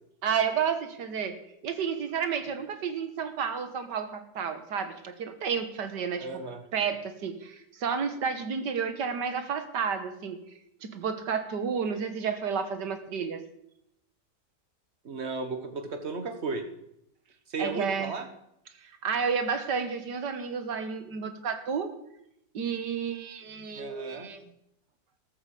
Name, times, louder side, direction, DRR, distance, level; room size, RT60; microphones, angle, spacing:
voice 1, 0.2-1.4 1.6-6.3 6.7-10.4 10.8-13.4 17.6-18.1 18.8-21.9 22.5-24.4, right 6 dB, 80° right, 9 dB, 2.0 m, -31 dB
voice 2, 6.2-6.6 15.0-16.6 17.5-18.3 23.7-24.3, right 4 dB, 40° right, 7 dB, 1.7 m, -34 dB
13.5 x 13.0 x 5.0 m, 0.78 s
omnidirectional pair, 1.8 m